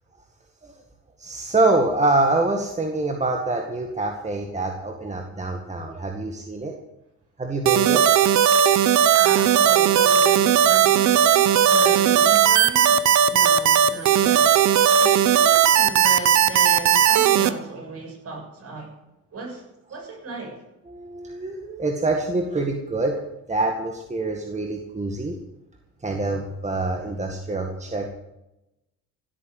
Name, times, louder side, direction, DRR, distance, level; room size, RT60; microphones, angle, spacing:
voice 1, 1.2-6.7 7.4-8.1 20.9-23.2 23.5-25.4 26.0-28.1, right 2 dB, 25° right, 3 dB, 1.9 m, -25 dB
sound 1, 7.7-17.5, right 9 dB, 65° right, 1.0 m, -17 dB
voice 2, 9.2-14.5 15.0-18.9 19.3-19.6 19.9-20.5, right 3 dB, 50° right, 1 dB, 6.9 m, -36 dB
16.0 x 8.7 x 7.9 m, 0.92 s
cardioid pair, 90°, 30 cm